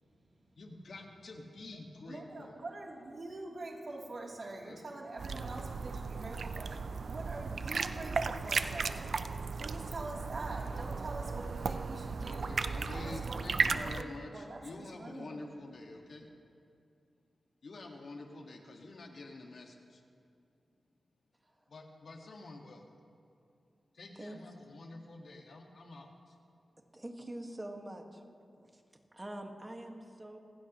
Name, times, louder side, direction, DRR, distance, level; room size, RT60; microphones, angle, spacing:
voice 1, 0.6-2.5 4.7-4.8 12.3-16.3 17.6-20.0 21.7-22.8 23.9-26.4, left 2 dB, 70° left, 1 dB, 1.8 m, -48 dB
voice 2, 2.1-9.0 9.4-12.5 12.8-15.7, right 2 dB, 55° right, -3 dB, 3.2 m, -44 dB
sound 1, 5.2-14.0, right 4 dB, 70° right, 0.6 m, -35 dB
voice 3, 26.9-28.2 28.6-28.8 29.1-30.4, right 1 dB, 20° right, 2 dB, 1.8 m, -45 dB
27.5 x 16.0 x 3.1 m, 2.5 s
wide cardioid pair, 90°, 0 cm